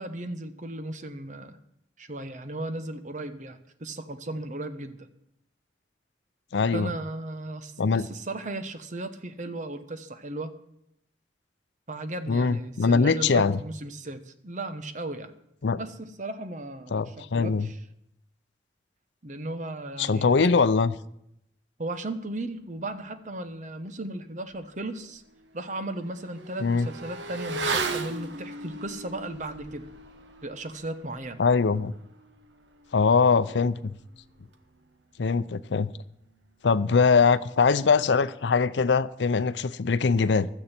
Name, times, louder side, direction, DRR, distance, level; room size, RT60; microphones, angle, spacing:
voice 1, 0.0-1.6 2.0-5.1 6.7-10.5 11.9-15.3 15.7-17.8 19.2-20.5 21.8-25.2 25.5-29.9 30.4-31.4, right 2 dB, 45° right, 1.0 m, -36 dB
voice 2, 6.5-6.9 7.8-8.1 12.3-13.6 15.6-15.8 16.9-17.7 20.0-20.9 26.6-26.9 31.4-31.9 32.9-33.9 35.2-35.9 36.6-40.5, left 5 dB, 85° left, 0.5 m, -22 dB
Motorcycle / Accelerating revving vroom, 24.5-24.6 25.0-35.0 35.3-35.4, right 3 dB, 85° right, 1.3 m, -37 dB
15.5 x 12.5 x 4.4 m
head